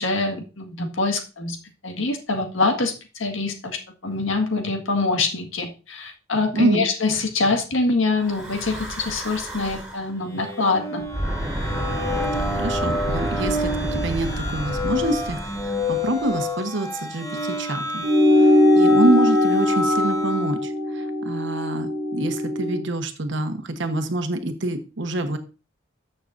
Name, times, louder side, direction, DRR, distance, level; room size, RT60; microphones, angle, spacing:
voice 1, 0.0-1.6 1.8-11.0, left 3 dB, 75° left, 5 dB, 1.7 m, -24 dB
voice 2, 6.5-6.9 12.5-18.1 18.4-18.5 18.7-25.4, right 2 dB, 60° right, 7 dB, 1.2 m, -26 dB
Breathing / Wind, 8.2-10.1 11.0-16.4, right 1 dB, 5° right, 3.3 m, -30 dB
sound 1, 10.3-20.6, left 1 dB, 15° left, 1.4 m, -29 dB
sound 2, 18.0-22.8, left 1 dB, 35° right, 1.9 m, -20 dB
13.5 x 6.7 x 2.6 m, 0.33 s
head